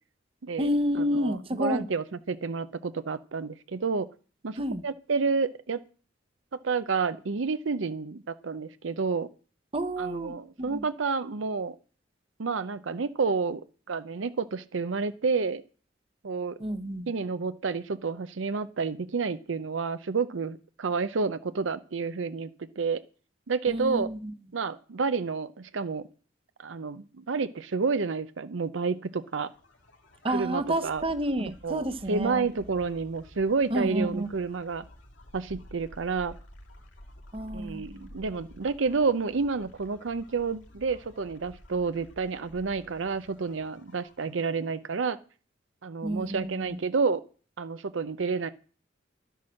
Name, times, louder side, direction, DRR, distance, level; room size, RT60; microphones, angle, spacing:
voice 1, 0.6-1.9 4.6-4.8 9.7-10.8 16.6-17.1 23.7-24.3 30.2-32.5 33.7-34.3 37.3-38.1 46.0-46.8, right 1 dB, 30° right, 10 dB, 0.9 m, -30 dB
voice 2, 1.2-4.1 4.4-5.8 6.6-9.3 10.0-11.8 12.4-13.6 13.9-15.6 16.2-16.6 17.1-23.0 23.5-24.1 24.5-26.1 26.6-29.5 30.3-31.0 31.4-34.8 35.3-36.4 37.5-45.2 45.8-47.2 47.6-48.5, right 4 dB, 85° right, 13 dB, 0.6 m, -30 dB
sound 1, 29.1-44.8, left 1 dB, 75° left, 2.7 m, -52 dB
11.5 x 10.0 x 6.4 m, 0.40 s
head